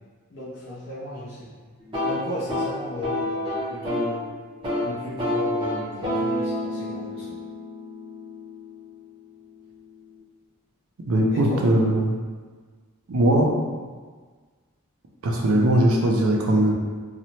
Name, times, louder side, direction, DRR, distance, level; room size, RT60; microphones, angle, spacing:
voice 1, 0.3-1.5 2.0-4.2 4.8-7.4 11.3-11.7, left 1 dB, 55° left, -10 dB, 0.6 m, -35 dB
sound 1, 1.8-4.2 4.5-4.9 5.2-9.0, left 1 dB, 25° right, 0.6 m, -29 dB
voice 2, 11.1-12.1 13.1-13.5 15.2-16.7, right 1 dB, 80° right, 0 dB, 0.5 m, -20 dB
2.8 x 2.1 x 2.8 m, 1.5 s
head